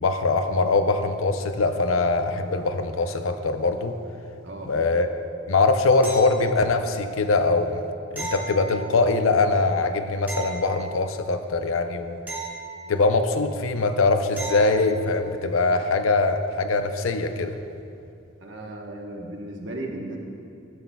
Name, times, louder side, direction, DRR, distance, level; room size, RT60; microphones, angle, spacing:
voice 1, 0.0-4.0 4.7-5.1 5.5-7.8 8.1-12.2 12.9-17.6, left 3 dB, 80° left, 8 dB, 0.6 m, -22 dB
voice 2, 4.4-4.7 18.4-20.2, right 1 dB, 60° right, 0 dB, 1.1 m, -35 dB
sound 1, 6.0-6.8 8.2-9.2 10.3-11.3 12.3-13.3 14.4-15.0 17.7-17.8, right 3 dB, 10° right, 1.3 m, -36 dB
12.5 x 11.5 x 2.3 m, 2.6 s
head